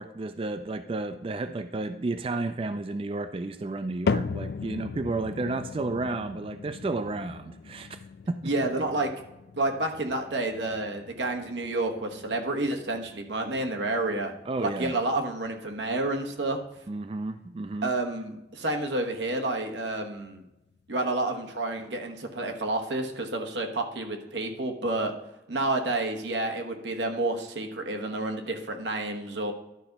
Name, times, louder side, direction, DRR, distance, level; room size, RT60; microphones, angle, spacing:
voice 1, 0.0-8.0 8.3-8.5 14.5-15.0 16.9-17.9, right 2 dB, 30° right, 10 dB, 0.3 m, -32 dB
sound 1, 4.1-20.4 20.7-21.2 21.8-21.9 22.7-22.8, left 5 dB, 65° left, 0.3 m, -39 dB
voice 2, 8.4-9.1 9.6-14.3 14.6-16.6 17.8-20.4 20.9-25.1 25.5-29.5, right 2 dB, 85° right, 4 dB, 1.2 m, -29 dB
11.5 x 3.9 x 5.8 m, 0.95 s
head